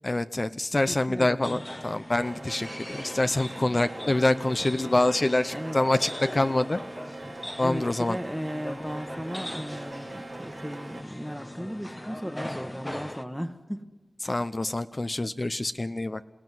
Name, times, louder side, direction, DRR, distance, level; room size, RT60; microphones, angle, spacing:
voice 1, 0.0-6.8 7.6-8.2 14.2-16.2, left 2 dB, 40° left, 10 dB, 0.7 m, -26 dB
voice 2, 0.9-1.6 5.5-5.8 7.6-13.8 14.2-14.4, equal, ahead, 5 dB, 1.3 m, -36 dB
sound 1, 1.4-13.2, left 1 dB, 20° left, 1.1 m, -40 dB
sound 2, 2.2-11.0, right 3 dB, 65° right, 1.4 m, -43 dB
28.0 x 16.5 x 9.4 m, 1.2 s
wide cardioid pair, 65°, 0 cm